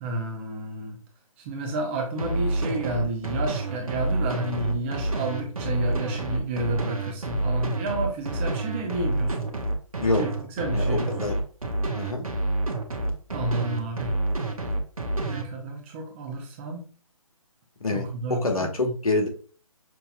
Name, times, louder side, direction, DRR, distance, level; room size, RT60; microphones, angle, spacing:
voice 1, 0.0-1.0 1.4-9.4 10.2-11.3 13.3-14.1 15.3-16.9 17.9-18.9, right 2 dB, 20° right, 1 dB, 0.8 m, -31 dB
sound 1, 2.2-15.4, right 2 dB, 80° right, 1.0 m, -28 dB
voice 2, 10.7-11.4 11.9-12.2 17.8-19.3, left 2 dB, 80° left, 3 dB, 1.3 m, -26 dB
6.1 x 2.7 x 2.4 m, 0.41 s
figure-of-eight pair, 140°, 18 cm